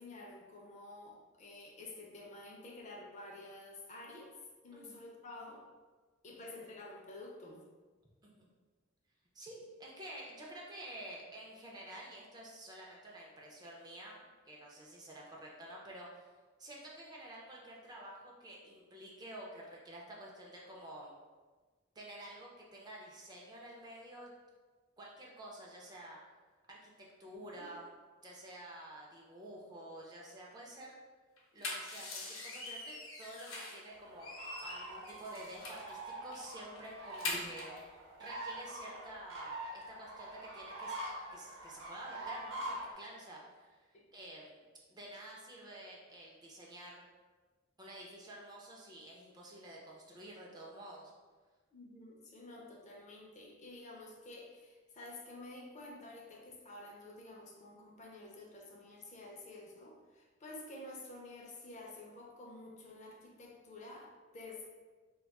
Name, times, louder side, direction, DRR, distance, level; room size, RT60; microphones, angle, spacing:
voice 1, 0.0-4.3 4.6-5.6 6.2-7.6 27.3-27.6 51.7-64.7, left 2 dB, 35° left, -1 dB, 0.4 m, -50 dB
voice 2, 9.3-14.2 14.5-16.3 16.6-21.1 22.0-24.3 25.0-26.2 26.7-27.9 28.2-31.0 31.5-34.3 34.6-37.7 38.2-41.0 41.3-44.6 44.9-47.0 47.8-51.1, right 1 dB, 20° right, -3 dB, 0.4 m, -50 dB
sound 1, 31.4-33.9 34.2-35.9 36.3-36.5 36.8-37.8, left 2 dB, 90° left, 0.6 m, -43 dB
sound 2, 33.9-42.9, right 1 dB, 70° right, 0.8 m, -45 dB
4.0 x 2.2 x 2.3 m, 1.3 s
head